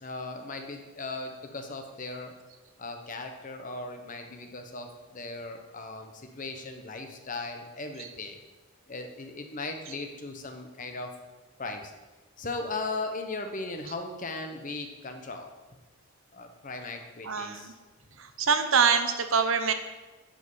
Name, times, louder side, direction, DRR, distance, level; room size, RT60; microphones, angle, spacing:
voice 1, 0.0-2.3 2.8-8.4 8.9-11.1 11.6-11.9 12.4-15.5 16.3-17.7, left 3 dB, 40° left, 5 dB, 0.9 m, -37 dB
voice 2, 17.2-17.7 18.2-19.7, right 6 dB, 65° right, 8 dB, 0.8 m, -25 dB
10.0 x 5.4 x 5.5 m, 1.2 s
head